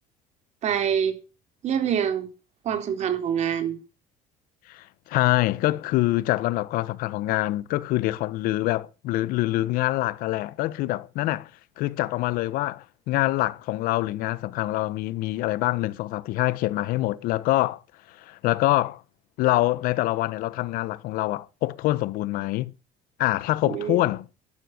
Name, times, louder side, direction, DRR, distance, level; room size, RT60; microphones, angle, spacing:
voice 1, 0.6-1.1 1.6-2.3 2.6-3.8 23.6-24.0, right 8 dB, 50° right, 3.7 m, -25 dB
voice 2, 4.7-11.5 11.8-17.8 18.1-19.0 19.4-22.7 23.2-24.3, left 17 dB, 70° left, 1.1 m, -25 dB
13.0 x 12.0 x 6.7 m
cardioid pair, 130°, 15 cm